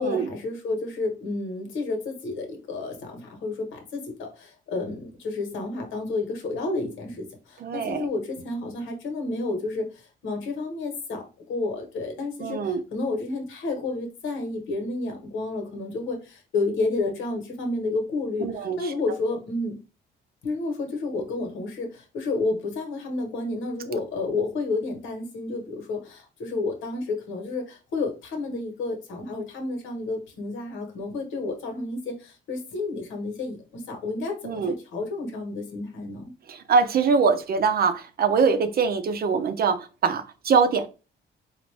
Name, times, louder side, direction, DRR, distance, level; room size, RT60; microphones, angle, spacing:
voice 1, 0.0-19.8 20.4-36.3, left 3 dB, 80° left, 1.3 m, -30 dB
voice 2, 7.6-8.1 12.4-12.8 18.4-18.8 34.4-34.7 36.5-40.9, right 5 dB, 50° right, 0.6 m, -23 dB
4.0 x 2.5 x 3.3 m
cardioid pair, 90°, 20 cm